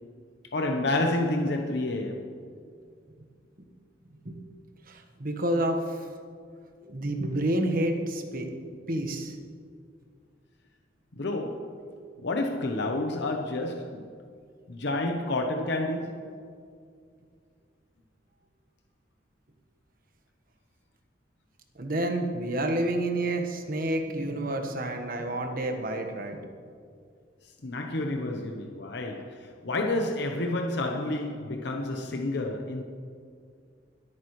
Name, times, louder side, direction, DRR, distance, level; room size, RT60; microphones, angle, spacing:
voice 1, 0.5-2.4 11.2-11.9 12.2-14.1 14.7-16.4 27.6-32.8, left 2 dB, 65° left, 0.9 m, -30 dB
voice 2, 4.9-6.1 6.8-8.5 8.9-9.4 21.8-26.5, right 1 dB, 50° right, 1.3 m, -29 dB
23.5 x 8.9 x 3.2 m
head